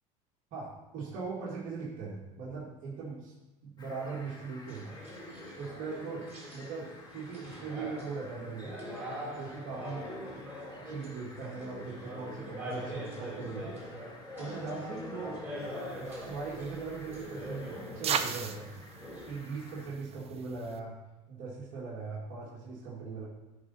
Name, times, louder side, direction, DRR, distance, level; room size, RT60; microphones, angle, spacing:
voice 1, 0.5-3.3 3.6-4.9 5.6-6.3 6.5-8.8 9.3-10.1 10.8-13.8 14.4-15.4 16.0-18.7 19.3-21.0 21.3-23.2, right 4 dB, 60° right, -7 dB, 2.0 m, -40 dB
Fowl, 3.8-19.9, left 2 dB, 25° left, 2.1 m, -53 dB
sound 1, 4.7-19.3, equal, 15° right, 3.4 m, -43 dB
sound 2, 15.7-20.8, right 7 dB, 35° right, 0.7 m, -39 dB
11.0 x 4.0 x 5.6 m, 1.1 s
supercardioid pair, 95°, 17 cm